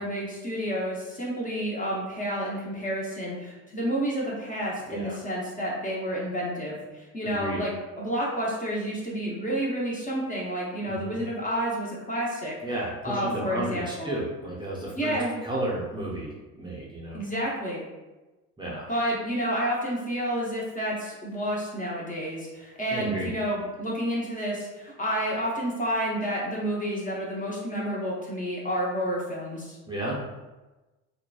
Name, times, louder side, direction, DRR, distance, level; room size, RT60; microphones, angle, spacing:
voice 1, 0.0-12.5 13.0-14.1 15.0-15.4 17.1-17.8 18.9-29.8, equal, 20° left, -4 dB, 0.8 m, -30 dB
voice 2, 4.9-5.2 7.2-7.6 10.9-11.2 12.6-15.1 15.4-17.2 18.6-18.9 22.9-23.3 29.8-30.2, right 1 dB, 10° right, -7 dB, 0.7 m, -33 dB
2.8 x 2.2 x 2.3 m, 1.1 s
hypercardioid pair, 65°, 39 cm